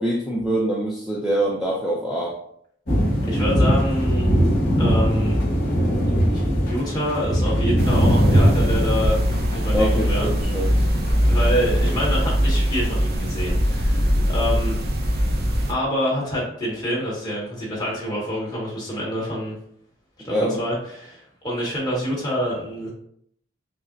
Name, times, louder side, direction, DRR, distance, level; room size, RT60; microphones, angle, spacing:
voice 1, 0.0-2.4 9.7-10.8 20.3-20.6, right 1 dB, 5° right, -5 dB, 0.4 m, -24 dB
sound 1, 2.9-13.0, equal, 55° left, 1.4 m, -22 dB
voice 2, 3.2-4.3 4.8-5.4 6.3-9.2 9.5-10.3 11.3-14.8 15.7-19.5 20.2-22.9, equal, 20° left, -5 dB, 1.3 m, -26 dB
sound 2, 7.8-15.7, equal, 55° right, 0.5 m, -22 dB
5.6 x 2.1 x 2.5 m, 0.66 s
head